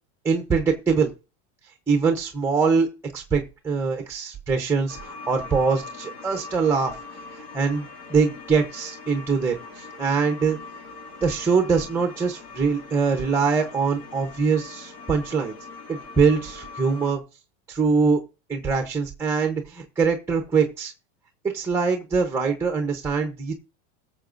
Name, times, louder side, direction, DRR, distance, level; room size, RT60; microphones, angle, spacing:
voice 1, 0.2-1.1 1.9-2.9 3.1-7.0 7.3-10.6 11.2-15.6 15.9-17.2 17.7-18.2 18.5-20.9 21.5-23.5, right 5 dB, 5° right, 4 dB, 0.8 m, -23 dB
sound 1, 4.9-17.1, left 4 dB, 70° left, 4.7 m, -41 dB
20.0 x 7.0 x 2.6 m, 0.31 s
supercardioid pair, 165°, 35 cm